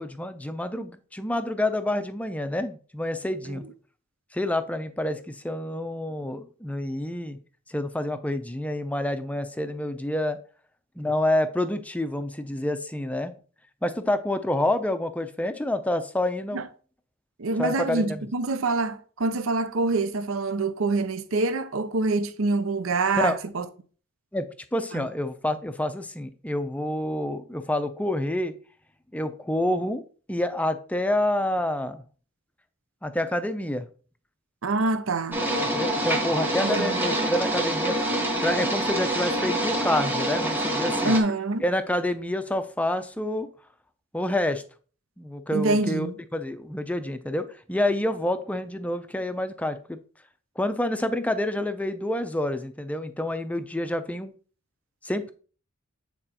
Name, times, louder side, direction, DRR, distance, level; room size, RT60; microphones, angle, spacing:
voice 1, 0.0-3.7 4.3-7.4 7.7-10.4 11.0-13.3 13.8-16.6 17.6-18.3 23.2-23.4 24.3-28.5 29.1-30.0 30.3-32.0 33.0-33.9 35.6-38.0 38.4-41.2 41.6-43.5 44.1-44.6 45.2-50.0 50.6-54.3 55.0-55.3, left 1 dB, 5° left, 0.5 m, -28 dB
voice 2, 17.4-23.6 24.9-25.1 34.6-35.4 36.6-37.0 41.0-41.6 45.5-46.1, right 3 dB, 70° right, 0.6 m, -26 dB
sound 1, 35.3-41.2, right 1 dB, 10° right, 1.2 m, -26 dB
8.9 x 4.1 x 2.9 m
head